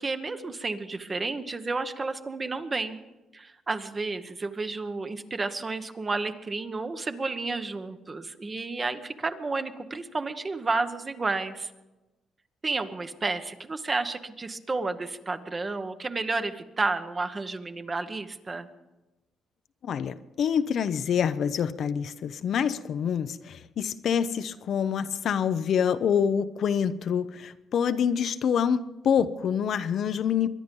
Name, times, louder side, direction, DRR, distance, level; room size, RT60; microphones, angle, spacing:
voice 1, 0.0-3.0 3.3-11.7 12.6-18.7, right 3 dB, 30° right, 9 dB, 1.1 m, -31 dB
voice 2, 19.8-30.5, left 7 dB, 65° left, 11 dB, 0.7 m, -26 dB
23.0 x 10.5 x 5.4 m, 1.1 s
cardioid pair, 90°, 0 cm